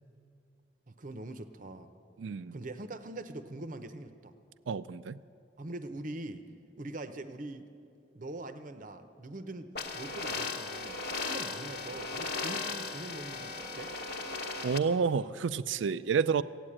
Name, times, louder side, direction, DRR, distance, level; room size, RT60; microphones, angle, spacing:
voice 1, 0.9-1.9 2.5-4.3 5.6-6.4 6.8-7.7 8.1-13.9, right 2 dB, 45° right, 10 dB, 0.7 m, -43 dB
voice 2, 2.2-2.6 4.7-5.2 14.6-16.4, right 6 dB, 90° right, 16 dB, 0.4 m, -29 dB
sound 1, 9.7-14.8, left 3 dB, 60° left, 1.0 m, -37 dB
15.0 x 8.9 x 8.8 m, 2.5 s
head